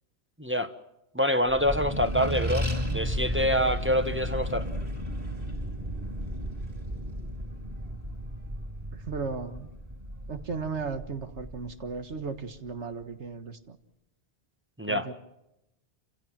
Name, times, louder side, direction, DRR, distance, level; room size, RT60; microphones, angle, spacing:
voice 1, 0.4-0.7 1.1-4.6 14.8-15.1, equal, 10° right, 1.2 m, -26 dB
Accelerating revving vroom, 1.5-12.4, equal, 35° right, 6.1 m, -34 dB
voice 2, 8.9-9.7 10.3-13.8 14.9-15.1, right 5 dB, 85° right, 1.9 m, -35 dB
29.0 x 16.0 x 7.4 m
omnidirectional pair, 1.1 m